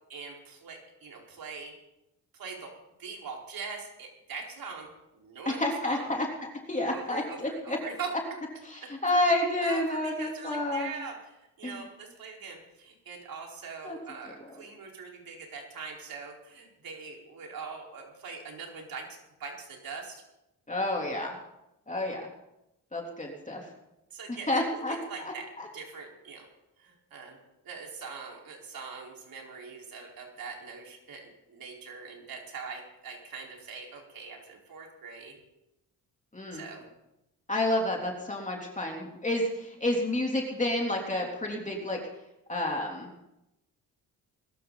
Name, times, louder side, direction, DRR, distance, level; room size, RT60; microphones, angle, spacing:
voice 1, 0.1-1.8 2.3-2.7 3.0-6.1 6.9-8.1 9.6-20.2 24.1-26.5 26.8-27.4 27.6-35.4 36.5-36.9, right 5 dB, 65° right, 0 dB, 4.7 m, -42 dB
voice 2, 5.4-6.3 6.7-7.8 8.6-11.0 11.6-11.8 13.8-14.0 14.2-14.6 20.7-21.4 21.9-22.3 22.9-23.6 24.5-24.9 25.6-25.7 36.3-36.6 37.5-42.0 42.5-43.3, left 1 dB, 20° left, 0 dB, 3.3 m, -30 dB
21.0 x 13.0 x 4.1 m, 0.89 s
cardioid pair, 80°, 38 cm